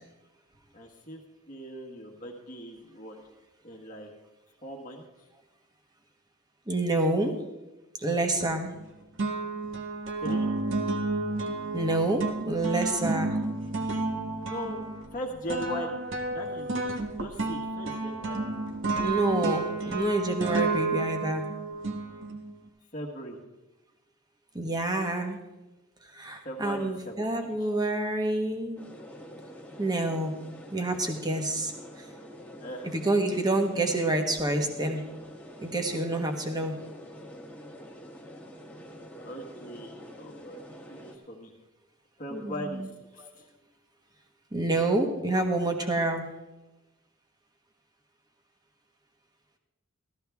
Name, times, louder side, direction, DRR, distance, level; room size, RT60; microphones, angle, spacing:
voice 1, 0.7-1.2 1.5-3.2 3.6-4.1 4.6-5.0 10.2-10.5 14.4-14.9 15.1-16.0 16.3-18.5 22.9-23.4 26.4-27.7 32.6-33.0 39.2-40.6 40.9-41.5 42.2-42.8 43.1-43.5, equal, 35° left, -1 dB, 1.5 m, -39 dB
voice 2, 6.7-7.3 8.0-8.7 11.7-13.4 19.0-21.5 24.5-25.4 26.1-28.9 29.8-30.4 30.7-31.7 32.0-32.1 32.9-35.0 35.6-36.7 42.3-42.9 43.2-43.3 44.5-46.3, right 2 dB, 20° right, 4 dB, 1.3 m, -28 dB
sound 1, 8.4-8.9 9.2-22.6, right 2 dB, 55° right, 1.1 m, -31 dB
sound 2, 28.8-41.2, equal, 5° left, 1.4 m, -46 dB
15.0 x 13.0 x 3.5 m, 1.0 s
head